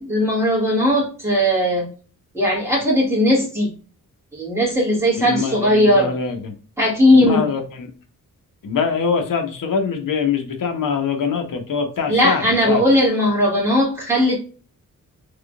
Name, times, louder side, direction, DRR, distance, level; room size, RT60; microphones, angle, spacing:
voice 1, 0.0-1.9 2.3-3.7 4.3-6.1 6.8-7.5 12.1-14.4, left 1 dB, 10° right, -5 dB, 1.9 m, -18 dB
voice 2, 5.2-6.5 7.1-7.9 8.6-12.8, left 5 dB, 70° left, 4 dB, 1.0 m, -23 dB
3.5 x 3.5 x 2.3 m, 0.38 s
wide cardioid pair, 135°, 34 cm